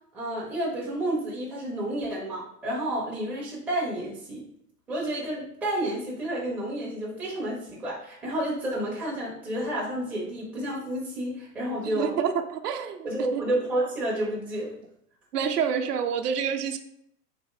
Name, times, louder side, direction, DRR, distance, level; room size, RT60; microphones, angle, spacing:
voice 1, 0.1-4.5 4.9-12.2 13.0-14.7, right 1 dB, 5° right, -5 dB, 0.4 m, -30 dB
voice 2, 11.8-13.4 15.3-16.8, right 7 dB, 75° right, 6 dB, 0.6 m, -28 dB
3.4 x 2.6 x 3.2 m, 0.73 s
figure-of-eight pair, 105°, 48 cm